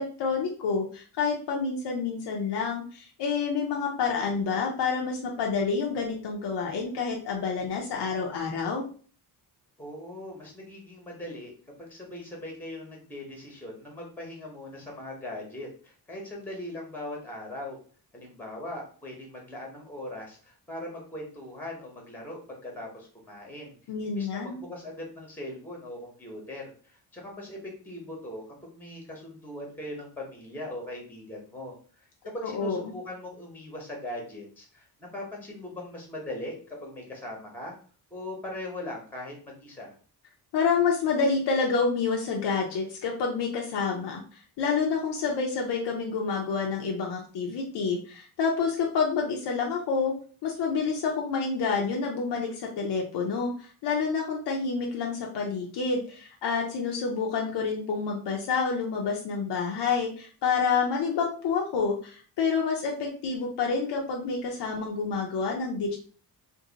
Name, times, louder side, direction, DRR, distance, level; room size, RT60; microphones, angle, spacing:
voice 1, 0.0-8.8 23.9-24.6 32.4-32.8 40.5-50.1 50.4-66.0, left 5 dB, 80° left, 0 dB, 0.7 m, -28 dB
voice 2, 9.8-11.5 11.8-17.8 18.1-23.8 24.0-37.8 38.1-39.9, left 1 dB, 5° left, 0 dB, 0.8 m, -40 dB
2.6 x 2.6 x 3.8 m, 0.42 s
wide cardioid pair, 155°, 41 cm